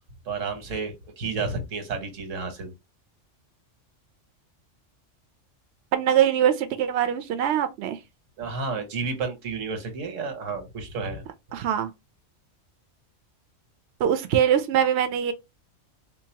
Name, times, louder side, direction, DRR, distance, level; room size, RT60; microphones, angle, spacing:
voice 1, 0.3-2.7 8.4-11.2, right 4 dB, 85° right, 1.5 m, -31 dB
voice 2, 5.9-8.0 11.5-11.9 14.0-15.3, right 9 dB, 70° right, 0.8 m, -22 dB
3.8 x 2.7 x 2.8 m
omnidirectional pair, 1.3 m